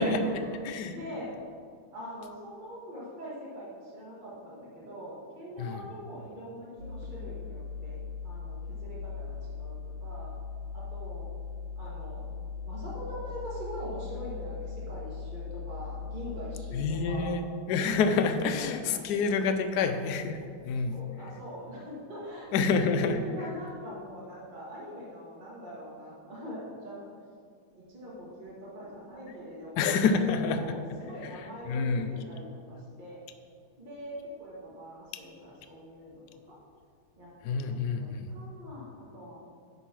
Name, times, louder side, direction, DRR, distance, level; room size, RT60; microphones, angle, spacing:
voice 1, 0.0-1.4 1.9-10.3 10.7-11.3 11.8-12.3 12.7-17.4 18.4-20.0 20.9-27.1 27.7-33.2 33.8-36.6 37.2-39.3, equal, 25° right, -6 dB, 1.7 m, -43 dB
voice 2, 0.6-1.0 5.6-5.8 16.7-17.4 17.7-20.4 20.6-21.0 22.5-23.2 29.8-30.7 31.2-31.3 31.7-32.1 37.4-38.3, left 4 dB, 70° left, 7 dB, 1.0 m, -27 dB
sound 1, 6.8-17.3, left 5 dB, 75° right, 1.7 m, -39 dB
9.9 x 4.0 x 6.1 m, 2.1 s
omnidirectional pair, 2.3 m